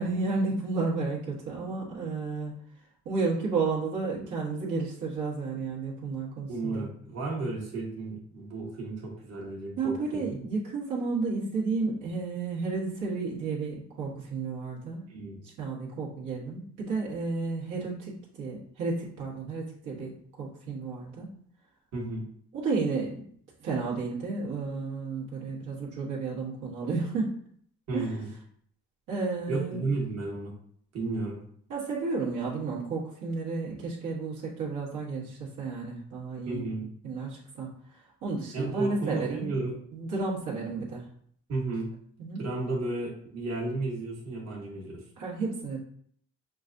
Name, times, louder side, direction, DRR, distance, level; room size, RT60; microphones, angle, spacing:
voice 1, 0.0-2.5 3.0-6.9 9.8-15.1 15.4-21.3 22.5-23.2 23.6-27.4 27.9-28.1 29.1-29.9 31.7-36.6 37.0-39.5 39.9-41.1 42.2-42.4 45.2-45.8, right 4 dB, 85° right, -6 dB, 1.4 m, -32 dB
voice 2, 6.5-10.3 15.1-15.4 21.9-22.3 27.9-28.3 29.5-30.5 30.9-31.4 36.4-36.9 38.5-39.7 41.5-41.9 42.4-45.0, right 2 dB, 60° right, -4 dB, 1.4 m, -33 dB
6.0 x 2.4 x 2.5 m, 0.63 s
cardioid pair, 90°, 30 cm